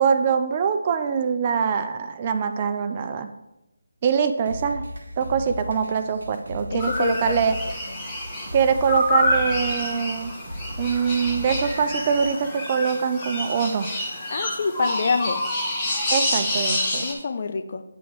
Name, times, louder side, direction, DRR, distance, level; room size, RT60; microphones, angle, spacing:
voice 1, 0.0-3.3 4.0-4.8 5.2-7.6 8.5-10.3 10.8-13.9 16.1-17.1, right 6 dB, 30° right, 8 dB, 0.4 m, -23 dB
sound 1, 4.5-12.4, equal, 65° right, 1.2 m, -37 dB
voice 2, 6.7-7.5 14.3-15.4 17.0-17.8, left 4 dB, 45° left, 8 dB, 0.5 m, -26 dB
sound 2, 6.8-17.1, left 1 dB, 20° left, 1.3 m, -27 dB
8.9 x 3.0 x 5.0 m, 0.93 s
figure-of-eight pair, 160°, 0 cm